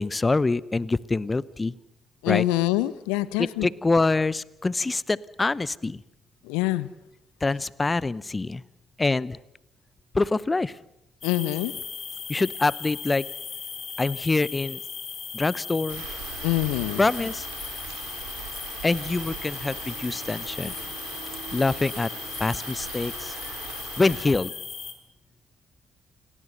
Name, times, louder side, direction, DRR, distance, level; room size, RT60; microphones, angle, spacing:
voice 1, 0.0-1.8 2.3-2.5 3.4-6.0 7.4-8.6 9.0-9.4 10.1-10.8 12.3-13.3 14.0-14.8 15.3-16.0 17.0-17.5 18.8-20.7 21.5-22.1 22.4-23.6 24.0-24.5, left 3 dB, 25° left, 0.8 m, -25 dB
voice 2, 2.2-3.7 6.4-6.9 11.2-11.7 16.4-17.0, left 17 dB, 75° left, 0.8 m, -25 dB
sound 1, 11.2-24.9, left 6 dB, 45° left, 3.6 m, -37 dB
Rain, 15.9-24.2, right 7 dB, 75° right, 3.6 m, -40 dB
28.5 x 18.5 x 6.8 m
figure-of-eight pair, 45°, 0 cm